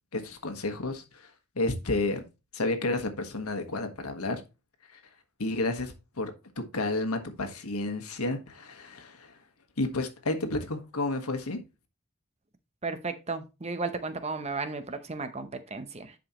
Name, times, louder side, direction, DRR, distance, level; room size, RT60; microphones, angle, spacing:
voice 1, 0.1-1.3 1.5-2.2 2.5-4.4 4.9-5.0 5.4-6.3 6.6-9.3 9.8-11.6, left 2 dB, 85° left, 1.4 m, -31 dB
voice 2, 12.8-16.1, right 3 dB, 30° right, 0.8 m, -34 dB
10.5 x 5.0 x 3.0 m
head